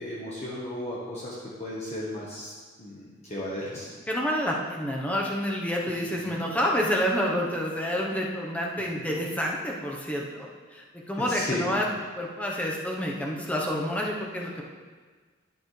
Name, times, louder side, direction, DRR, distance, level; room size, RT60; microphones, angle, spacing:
voice 1, 0.0-2.5 2.8-3.9 6.2-6.4 9.0-9.1 11.2-11.7, left 1 dB, 35° left, -7 dB, 1.2 m, -35 dB
voice 2, 4.1-11.9 12.1-14.6, equal, 10° left, -2 dB, 1.0 m, -28 dB
11.5 x 6.9 x 3.3 m, 1.5 s
head